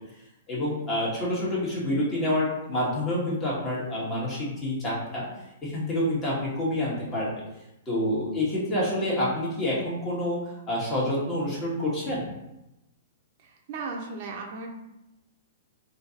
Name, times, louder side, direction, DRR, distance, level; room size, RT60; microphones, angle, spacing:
voice 1, 0.5-5.3 5.6-7.4 7.9-10.4 10.7-12.2, left 1 dB, 25° left, -6 dB, 1.4 m, -27 dB
voice 2, 13.4-14.7, right 4 dB, 50° right, 1 dB, 0.6 m, -36 dB
3.6 x 2.7 x 2.8 m, 0.91 s
hypercardioid pair, 140°, 0 cm